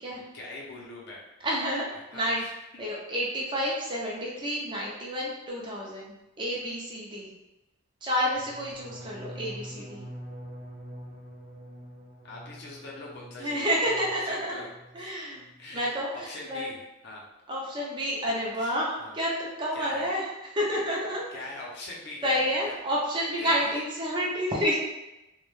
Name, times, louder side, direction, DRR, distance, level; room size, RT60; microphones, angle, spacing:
voice 1, 0.2-1.2 1.9-2.5 12.2-13.7 14.2-14.7 15.0-15.1 15.6-16.8 17.0-17.3 18.3-18.7 19.0-19.2 19.7-20.1 21.3-22.5 23.4-23.6, left 2 dB, 55° left, -3 dB, 0.6 m, -42 dB
voice 2, 1.4-2.4 2.8-7.3 8.0-10.0 13.4-14.6 14.9-15.4 15.7-16.7 17.5-21.4 22.2-24.8, equal, 25° right, -5 dB, 0.4 m, -29 dB
sound 1, 8.3-14.3 14.6-15.1 15.4-15.7, equal, 60° right, 0.7 m, -45 dB
2.2 x 2.1 x 3.0 m, 0.96 s
head